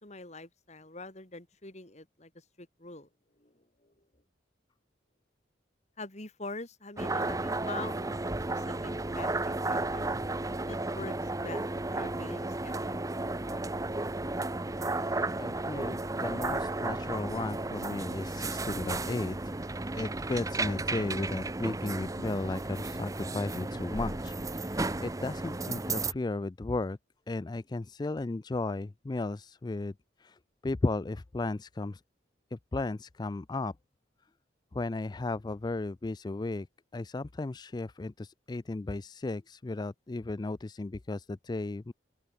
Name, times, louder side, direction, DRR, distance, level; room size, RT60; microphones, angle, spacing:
voice 1, 0.0-3.1 3.4-4.1 6.0-8.2 8.5-10.1 10.7-11.6 11.9-13.0, left 3 dB, 40° left, 3.4 m, -44 dB
sound 1, 7.0-26.1, right 2 dB, 20° right, 0.8 m, -33 dB
voice 2, 15.4-19.5 19.9-27.0 27.3-32.0 32.5-33.7 34.7-36.7 36.9-41.9, left 2 dB, 20° left, 0.4 m, -35 dB
open air
head